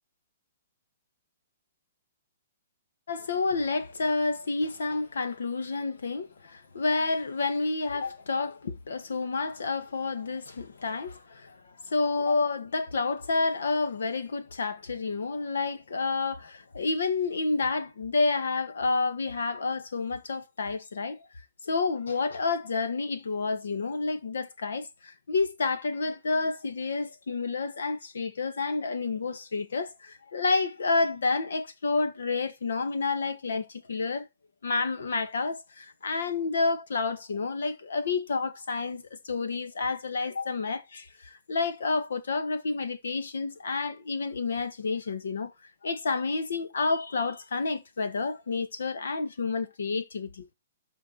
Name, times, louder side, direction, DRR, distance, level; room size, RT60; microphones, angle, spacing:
voice 1, 3.1-21.2 21.6-34.3 34.6-45.5 45.8-50.5, left 3 dB, 85° left, 1.6 m, -29 dB
13.0 x 4.6 x 4.2 m
hypercardioid pair, 155°, 0 cm